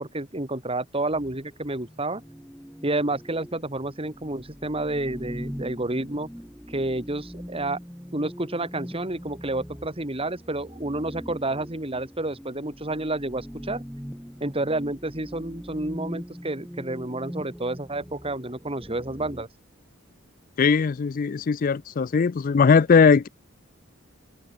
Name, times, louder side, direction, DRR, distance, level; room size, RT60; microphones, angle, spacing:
voice 1, 0.0-2.2 2.8-6.3 6.7-7.8 8.1-13.8 14.4-19.5, right 2 dB, 30° right, 3.1 m, -30 dB
sound 1, 1.1-19.4, equal, ahead, 3.6 m, -41 dB
voice 2, 20.6-23.3, left 5 dB, 45° left, 0.4 m, -19 dB
open air
head